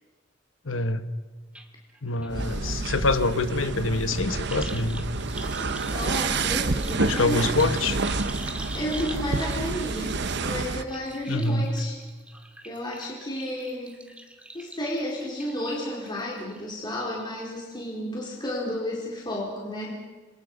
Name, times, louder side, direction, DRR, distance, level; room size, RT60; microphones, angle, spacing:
voice 1, 0.6-1.0 2.0-5.1 7.0-8.0 11.3-11.7, left 2 dB, 80° left, 10 dB, 1.3 m, -25 dB
sound 1, 1.5-1.7 1.9-16.6 17.0-17.5 17.7-17.8, right 1 dB, 5° right, 2.2 m, -43 dB
voice 2, 2.3-2.9 5.9-7.5 8.7-12.0 12.6-14.0 14.5-19.9, equal, 25° left, -3 dB, 4.2 m, -32 dB
sound 2, 2.3-10.8, right 3 dB, 60° right, 1.0 m, -29 dB
28.0 x 25.0 x 5.4 m, 1.4 s
head